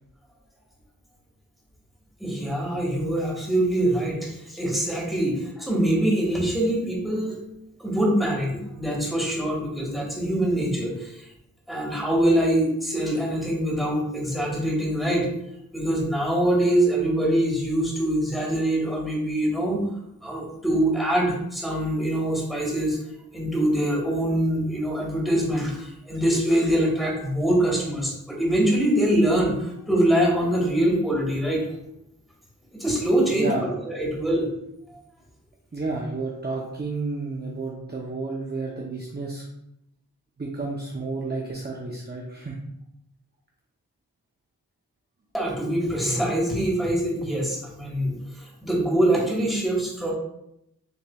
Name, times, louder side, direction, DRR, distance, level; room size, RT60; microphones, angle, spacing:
voice 1, 2.2-7.4 7.8-11.2 11.7-15.3 15.7-19.8 20.2-23.0 23.3-31.7 32.7-34.5 45.3-50.1, right 1 dB, ahead, -4 dB, 1.7 m, -24 dB
voice 2, 33.3-33.7 35.7-39.4 40.4-42.6, right 3 dB, 30° right, -2 dB, 0.7 m, -31 dB
7.0 x 3.1 x 2.3 m, 0.80 s
wide cardioid pair, 50°, 35 cm